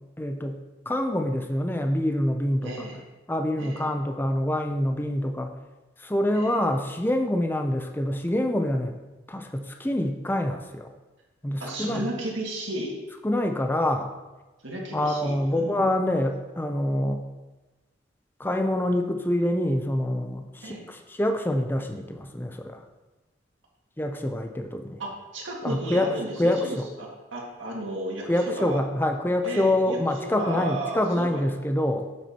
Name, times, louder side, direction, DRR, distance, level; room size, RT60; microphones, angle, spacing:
voice 1, 0.2-0.6 0.9-2.9 3.3-5.5 6.0-8.9 9.3-10.9 11.4-12.0 13.2-14.1 14.9-17.2 18.4-22.8 24.0-25.0 25.6-26.1 26.4-26.9 28.3-32.1, left 1 dB, 10° left, 5 dB, 0.5 m, -26 dB
voice 2, 2.6-3.0 3.6-3.9 6.3-6.6 11.6-12.9 14.6-16.0 20.6-20.9 25.0-28.8 29.4-31.4, right 1 dB, 85° right, -2 dB, 1.9 m, -34 dB
8.6 x 7.4 x 2.9 m, 1.1 s
head